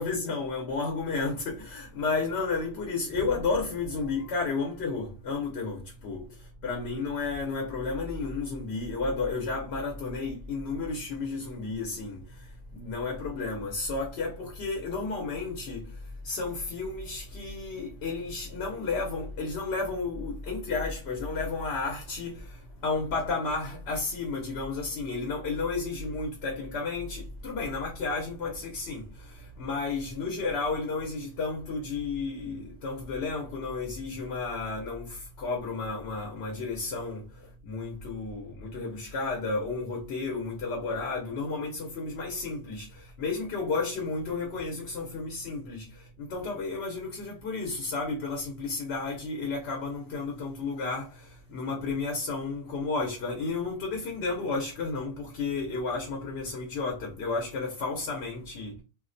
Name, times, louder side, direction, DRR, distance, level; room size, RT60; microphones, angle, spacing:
voice 1, 0.0-15.9 16.2-37.2 37.6-58.8, left 3 dB, 90° left, 0.9 m, -32 dB
sound 1, 3.0-5.6, right 2 dB, 55° left, 0.6 m, -47 dB
2.4 x 2.0 x 2.5 m
omnidirectional pair, 1.0 m